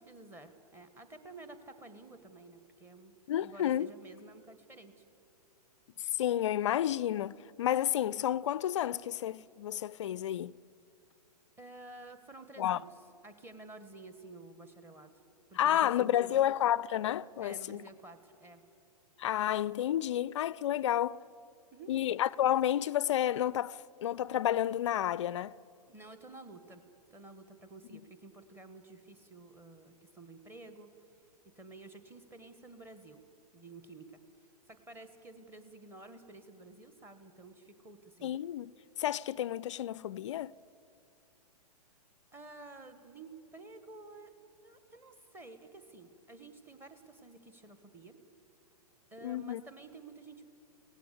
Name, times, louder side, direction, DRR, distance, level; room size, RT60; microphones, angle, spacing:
voice 1, 0.0-5.0 11.6-13.0 13.2-15.1 15.5-16.5 17.4-18.7 21.7-21.9 25.9-26.8 27.1-30.9 31.4-33.2 33.5-34.1 34.7-38.3 42.3-44.3 44.6-48.2 49.1-50.4, right 2 dB, 10° right, 1.5 m, -51 dB
voice 2, 3.3-3.9 6.1-10.5 12.6-12.8 15.6-17.8 19.2-21.2 21.9-25.5 27.9-28.0 38.2-38.7 39.0-40.5 49.2-49.6, left 11 dB, 45° left, 0.5 m, -31 dB
23.0 x 17.5 x 8.3 m
figure-of-eight pair, 115°, 20 cm